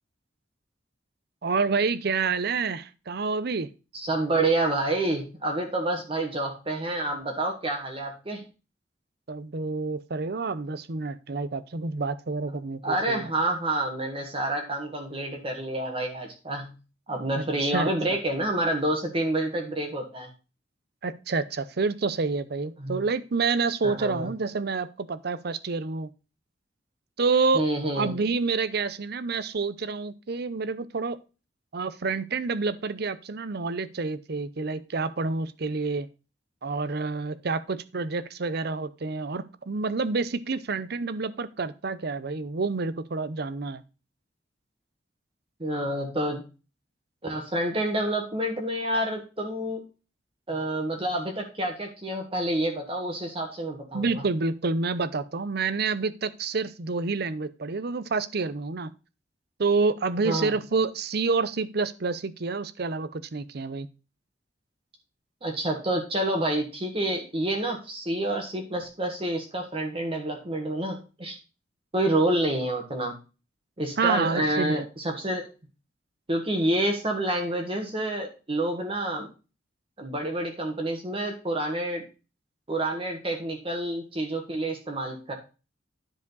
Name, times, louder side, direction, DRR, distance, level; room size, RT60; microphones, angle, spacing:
voice 1, 1.4-3.7 9.3-13.3 17.4-17.9 21.0-26.1 27.2-27.6 28.0-31.2 31.7-36.1 36.6-43.8 53.9-58.9 59.6-63.9 74.0-74.9, right 4 dB, 60° right, 15 dB, 0.7 m, -28 dB
voice 2, 3.9-8.4 12.8-16.7 17.1-20.3 22.8-23.0 23.8-24.3 27.5-28.1 45.6-46.4 47.2-49.8 50.5-54.2 60.2-60.6 65.4-71.4 71.9-73.2 73.8-75.5 76.3-79.3 80.0-82.0 82.7-85.3, right 1 dB, 30° right, 1 dB, 1.5 m, -28 dB
10.5 x 5.0 x 4.0 m, 0.32 s
head